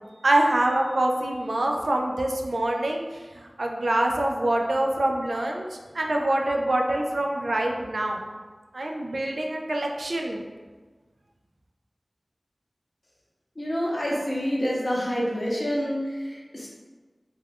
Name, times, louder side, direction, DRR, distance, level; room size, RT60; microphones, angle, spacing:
voice 1, 0.2-3.0 3.3-5.7 5.9-8.2 8.7-10.4, right 1 dB, 80° right, 1 dB, 0.3 m, -25 dB
voice 2, 13.6-16.7, equal, 45° left, -4 dB, 0.7 m, -27 dB
2.3 x 2.3 x 3.3 m, 1.4 s
wide cardioid pair, 60°, 0 cm